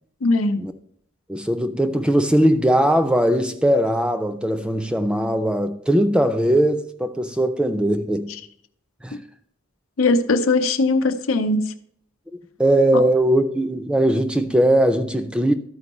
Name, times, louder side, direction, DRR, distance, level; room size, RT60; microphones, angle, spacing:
voice 1, 0.2-0.6 10.0-11.7 12.9-13.0, left 3 dB, 90° left, 0.7 m, -20 dB
voice 2, 1.3-8.3 9.0-9.2 12.6-15.5, right 1 dB, 5° right, 0.4 m, -19 dB
12.5 x 4.5 x 4.2 m
head